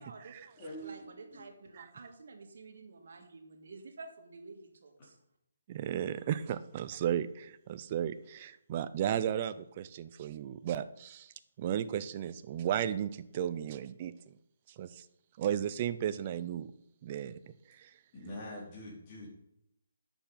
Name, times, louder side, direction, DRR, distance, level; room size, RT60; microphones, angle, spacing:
voice 1, 0.0-0.4 0.8-5.2 9.1-9.3, right 3 dB, 65° right, 4 dB, 1.9 m, -50 dB
voice 2, 0.6-1.0 1.3-1.4 18.1-19.3, equal, 30° left, -6 dB, 4.2 m, -44 dB
voice 3, 5.7-14.3 14.8-15.1 15.4-16.7 17.0-17.4 17.7-17.9, right 10 dB, 30° right, 13 dB, 0.5 m, -34 dB
9.1 x 7.0 x 5.7 m, 0.79 s
hypercardioid pair, 160°, 0 cm